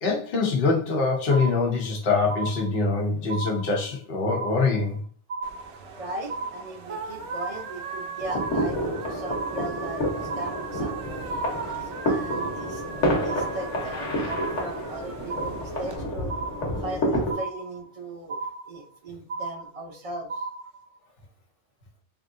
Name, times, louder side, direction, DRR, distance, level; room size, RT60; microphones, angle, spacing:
voice 1, 0.0-5.0, left 4 dB, 55° left, -1 dB, 1.0 m, -24 dB
sound 1, 1.3-2.0 2.3-3.0 3.3-4.0 4.3-5.0 5.3-6.0 6.3-7.0 7.3-8.0 8.3-9.0 9.3-10.0 10.3-11.0 11.3-12.0 12.3-13.0 13.3-14.0 14.3-15.0 15.3-16.0 16.3-17.0 17.3-18.0 18.3-19.0 19.3-20.0 20.3-21.0, right 4 dB, 85° right, 1.1 m, -35 dB
sound 2, 5.4-16.0, right 5 dB, 65° right, 0.8 m, -39 dB
voice 2, 5.7-11.2 11.8-12.9 13.2-16.4 16.8-20.5, right 2 dB, 45° right, 4 dB, 0.4 m, -38 dB
sound 3, 8.2-17.3, equal, 80° left, 1.3 m, -29 dB
3.4 x 2.5 x 3.7 m, 0.44 s
omnidirectional pair, 1.2 m